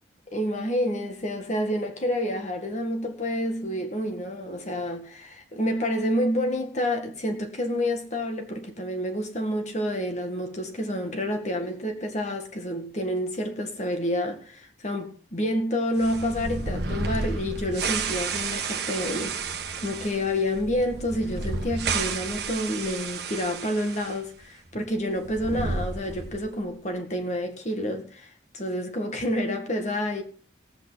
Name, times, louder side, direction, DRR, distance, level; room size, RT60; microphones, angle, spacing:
voice 1, 0.3-30.2, equal, 40° left, 1.8 m, -29 dB
sound 1, 16.0-24.2 24.4-24.5 25.2-26.5, right 4 dB, 55° right, 1.2 m, -31 dB
18.5 x 8.3 x 4.0 m
head